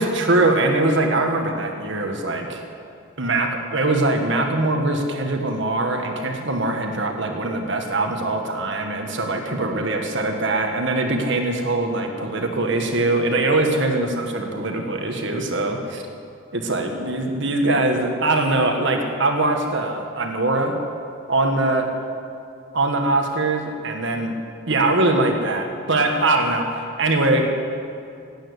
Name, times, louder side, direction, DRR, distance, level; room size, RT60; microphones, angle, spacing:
voice 1, 0.0-2.6 3.2-16.0 16.5-20.8 21.3-21.9 22.7-24.4 24.7-27.5, right 2 dB, 60° right, 3 dB, 1.7 m, -22 dB
16.5 x 9.0 x 9.9 m, 2.4 s
head